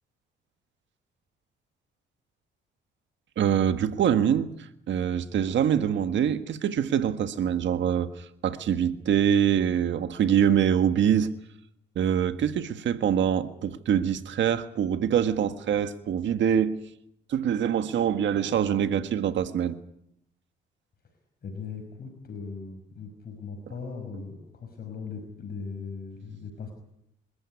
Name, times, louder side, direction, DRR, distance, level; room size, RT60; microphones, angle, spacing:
voice 1, 3.4-4.5 4.9-11.3 11.9-16.8 17.3-19.7, right 9 dB, 65° right, 9 dB, 1.6 m, -24 dB
voice 2, 21.4-26.7, left 5 dB, 50° left, 3 dB, 5.7 m, -39 dB
27.0 x 13.5 x 9.8 m, 0.75 s
cardioid pair, 90°, 20 cm